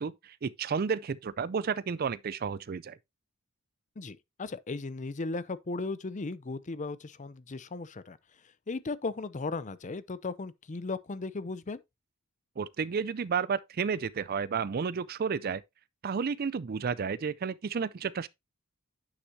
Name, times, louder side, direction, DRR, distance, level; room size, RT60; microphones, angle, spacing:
voice 1, 0.0-3.0 12.6-15.6 16.0-18.3, right 6 dB, 45° right, 0.4 m, -32 dB
voice 2, 4.0-8.2 8.7-11.8, left 3 dB, 35° left, 0.6 m, -36 dB
9.7 x 6.0 x 2.7 m
head